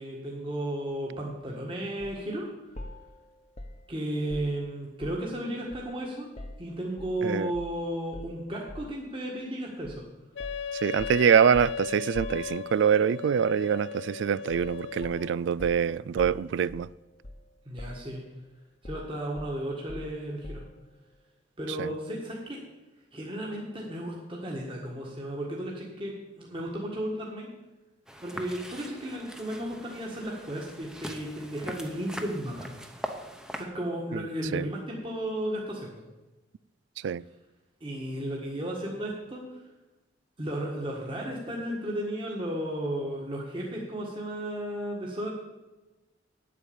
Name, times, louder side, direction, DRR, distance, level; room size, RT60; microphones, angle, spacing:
voice 1, 0.0-2.5 3.9-6.3 6.6-10.0 17.7-18.2 18.8-20.6 21.6-22.6 23.1-27.5 28.2-32.7 33.5-36.0 37.8-39.6 40.4-45.3, right 1 dB, 25° right, 1.7 m, -34 dB
sound 1, 2.0-2.2 2.8-5.4 5.7-7.2 7.5-7.8 8.1-9.0 9.8-10.0 10.4-13.0 14.5-14.8 15.0-17.5 17.8-18.4 18.8-20.8, left 1 dB, 35° left, 1.0 m, -44 dB
Wind instrument woodwind instrument, 10.4-15.4, left 7 dB, 70° left, 0.5 m, -37 dB
voice 2, 10.8-16.9 21.8-21.9 34.1-34.2 34.5-34.7 37.0-37.2, right 7 dB, 70° right, 0.3 m, -25 dB
sound 2, 28.1-33.6, equal, 5° right, 0.9 m, -41 dB
9.2 x 8.4 x 7.1 m
head